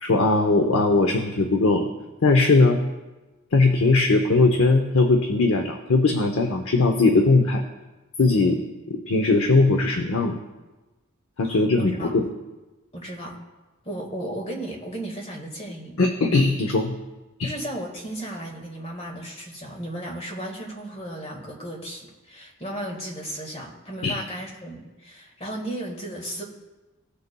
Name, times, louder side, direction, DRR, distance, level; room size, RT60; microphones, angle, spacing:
voice 1, 0.0-1.9 2.2-2.8 3.5-7.6 8.2-10.3 11.4-12.3 16.0-16.9 17.4-17.5 24.0-24.1, left 3 dB, 75° left, 5 dB, 0.7 m, -20 dB
voice 2, 11.4-12.1 12.9-13.4 13.8-15.9 17.4-26.4, right 1 dB, 30° left, 0 dB, 1.7 m, -35 dB
16.0 x 6.7 x 2.2 m, 1.1 s
head